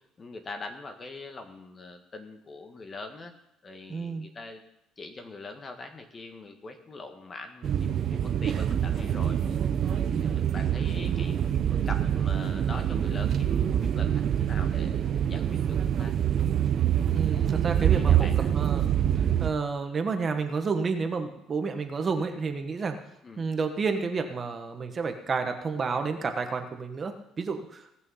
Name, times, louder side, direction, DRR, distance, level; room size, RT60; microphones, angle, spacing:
voice 1, 0.0-3.3 3.6-4.6 5.0-9.4 9.9-11.3 11.9-14.1 14.4-16.1 17.6-18.5 23.2-23.5, left 3 dB, 30° left, 6 dB, 1.6 m, -43 dB
voice 2, 3.9-4.3 10.1-10.5 17.1-18.3 18.5-18.9 19.4-23.0 23.4-27.9, right 4 dB, 35° right, 6 dB, 1.2 m, -30 dB
sound 1, 7.6-19.5, right 10 dB, 50° right, 0.8 m, -25 dB
18.5 x 6.3 x 5.6 m, 0.80 s
cardioid pair, 115°, 0 cm